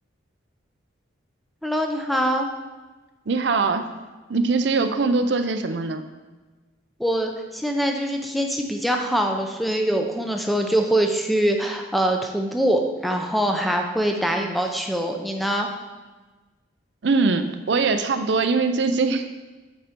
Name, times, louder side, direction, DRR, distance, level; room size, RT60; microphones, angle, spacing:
voice 1, 1.6-2.5 7.0-15.7, right 1 dB, ahead, 3 dB, 0.6 m, -23 dB
voice 2, 3.3-3.8 4.3-6.0 17.0-19.3, right 4 dB, 60° right, 9 dB, 0.5 m, -22 dB
8.3 x 5.5 x 4.5 m, 1.2 s
head